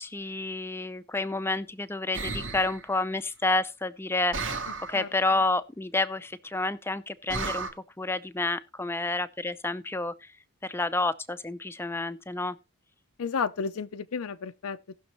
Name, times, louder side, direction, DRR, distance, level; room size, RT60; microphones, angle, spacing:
voice 1, 0.0-4.5 4.9-7.7 8.0-10.3 10.6-12.6, left 2 dB, 10° left, 0.5 m, -29 dB
sound 1, 2.1-2.8 4.3-5.0 7.3-7.7, right 3 dB, 60° right, 2.2 m, -33 dB
voice 2, 13.2-15.0, left 5 dB, 80° left, 0.5 m, -32 dB
18.5 x 6.3 x 3.0 m
head